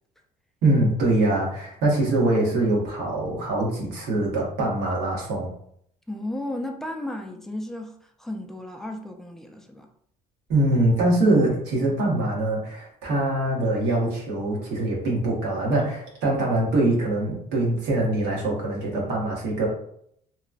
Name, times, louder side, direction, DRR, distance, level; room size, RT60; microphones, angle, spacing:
voice 1, 0.6-5.5 10.5-19.7, right 2 dB, 85° right, 1.1 m, -23 dB
voice 2, 6.1-7.9 8.2-9.9, left 1 dB, ahead, 0.3 m, -34 dB
2.9 x 2.1 x 2.4 m
cardioid pair, 110°, 17 cm